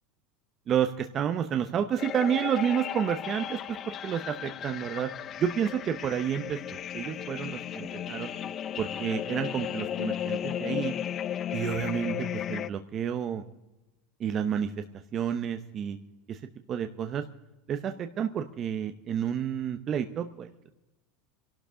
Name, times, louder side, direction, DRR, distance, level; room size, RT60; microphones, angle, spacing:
voice 1, 0.7-5.1 5.4-6.6 6.9-8.3 8.8-10.9 11.5-13.4 14.2-14.8 15.1-16.0 16.3-16.4 16.7-17.2 17.7-20.5, right 8 dB, 30° right, 7 dB, 0.7 m, -30 dB
sound 1, 2.0-12.7, left 10 dB, 30° left, 0.4 m, -35 dB
25.0 x 12.0 x 3.7 m, 1.0 s
supercardioid pair, 150°, 0 cm